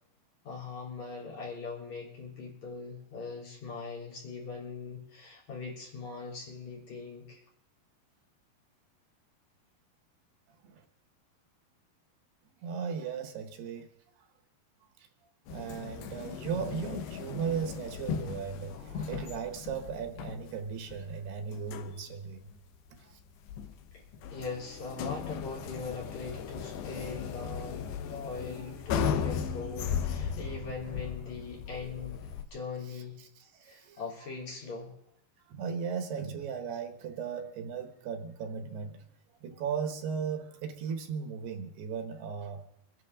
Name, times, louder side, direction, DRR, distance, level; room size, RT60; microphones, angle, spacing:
voice 1, 0.4-7.4 23.9-24.0 24.3-33.2 33.6-34.9, left 4 dB, 45° left, 4.7 m, -41 dB
voice 2, 12.6-13.9 14.2-14.3 15.0-15.1 15.5-22.5 23.0-23.2 32.9-34.0 35.5-39.0 39.4-42.7, right 6 dB, 80° right, 3.5 m, -37 dB
sound 1, 15.5-32.4, left 7 dB, 90° left, 3.2 m, -37 dB
25.0 x 11.0 x 3.8 m
omnidirectional pair, 4.7 m